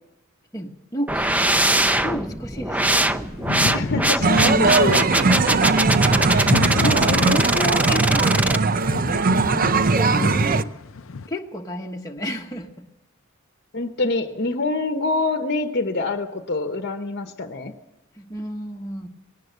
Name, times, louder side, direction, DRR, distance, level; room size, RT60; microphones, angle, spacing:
voice 1, 0.5-1.4 1.8-3.2 6.1-6.6 6.8-10.7 11.3-12.7 18.2-19.1, equal, 15° left, 0 dB, 1.3 m, -32 dB
sound 1, 1.1-8.6, right 1 dB, 5° right, 0.7 m, -22 dB
sound 2, 2.8-11.3, left 4 dB, 70° left, 0.6 m, -30 dB
voice 2, 3.7-5.0 13.7-17.7, left 2 dB, 55° left, 6 dB, 1.1 m, -25 dB
sound 3, 4.2-10.6, right 4 dB, 45° right, 0.6 m, -20 dB
19.0 x 17.5 x 8.0 m, 0.96 s
head